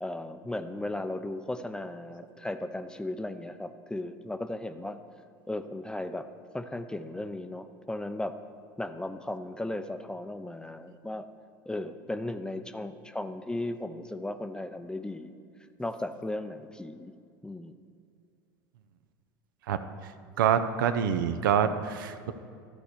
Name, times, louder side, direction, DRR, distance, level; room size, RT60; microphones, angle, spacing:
voice 1, 0.0-5.0 5.5-6.3 6.5-8.3 8.8-11.3 11.7-15.3 15.8-17.1 17.4-17.7, left 1 dB, 5° left, 9 dB, 0.5 m, -36 dB
voice 2, 20.4-22.3, right 8 dB, 75° right, 10 dB, 0.6 m, -26 dB
12.0 x 4.5 x 6.6 m, 2.4 s
hypercardioid pair, 80°, 11 cm